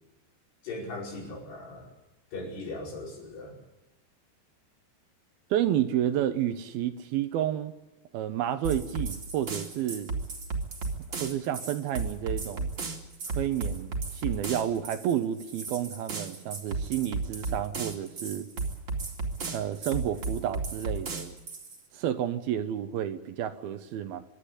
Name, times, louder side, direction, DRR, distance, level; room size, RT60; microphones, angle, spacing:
voice 1, 0.6-1.9 2.3-3.6, left 2 dB, 75° left, -1 dB, 7.4 m, -38 dB
voice 2, 5.5-7.7 8.1-10.1 11.2-12.7 13.3-18.5 19.5-21.3 21.9-24.2, right 11 dB, 75° right, 10 dB, 2.6 m, -30 dB
sound 1, 8.6-21.8, right 3 dB, 35° right, 2.6 m, -34 dB
25.5 x 12.0 x 9.8 m, 1.1 s
omnidirectional pair, 4.8 m